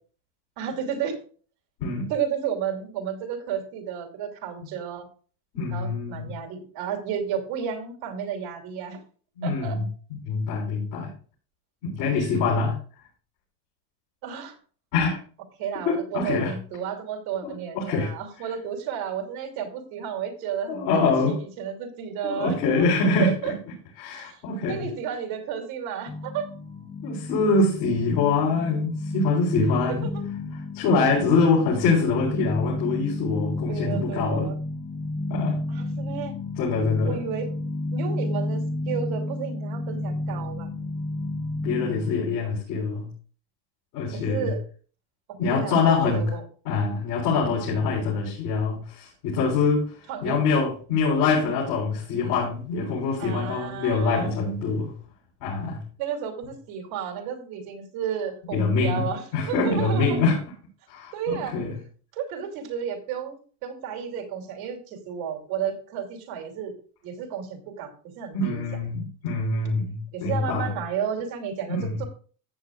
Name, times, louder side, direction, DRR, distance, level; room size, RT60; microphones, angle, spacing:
voice 1, 0.6-1.2 2.1-5.1 5.7-9.0 9.4-9.8 12.2-12.3 14.2-14.6 15.6-22.8 23.2-23.5 24.1-24.4 24.7-26.5 29.9-30.2 33.7-34.6 35.7-36.3 37.0-37.5 37.9-40.7 44.1-44.6 45.3-46.4 50.1-50.4 53.2-54.3 56.0-60.2 61.1-61.5 62.1-66.7 67.0-68.6 70.1-72.0, right 8 dB, 80° right, 3 dB, 3.0 m, -32 dB
voice 2, 5.5-6.4 9.4-9.9 10.2-11.1 11.8-12.8 14.9-15.2 15.8-16.5 17.4-18.1 20.7-21.4 22.2-23.5 24.0-24.9 27.0-30.1 30.7-34.5 35.3-35.6 36.6-37.2 41.6-43.1 43.9-44.5 45.4-46.4 46.6-54.9 55.4-55.8 58.5-59.1 59.3-60.4 60.9-61.7 68.3-70.7 71.7-72.0, left 4 dB, 85° left, -6 dB, 4.4 m, -24 dB
sound 1, 26.1-42.1, left 2 dB, 15° left, 0.7 m, -31 dB
14.5 x 8.0 x 2.4 m, 0.41 s
supercardioid pair, 85°, 45 cm